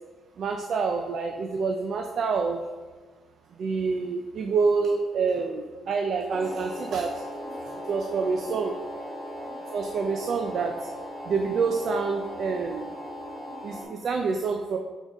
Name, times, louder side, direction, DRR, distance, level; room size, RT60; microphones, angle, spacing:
voice 1, 0.4-2.6 3.6-7.2 7.6-8.8 9.7-10.9 11.2-13.0 13.6-14.8, right 4 dB, 60° right, 4 dB, 0.5 m, -27 dB
sound 1, 6.3-13.8, equal, 20° left, 1.8 m, -38 dB
7.1 x 4.0 x 3.5 m, 1.3 s
cardioid pair, 90°, 0 cm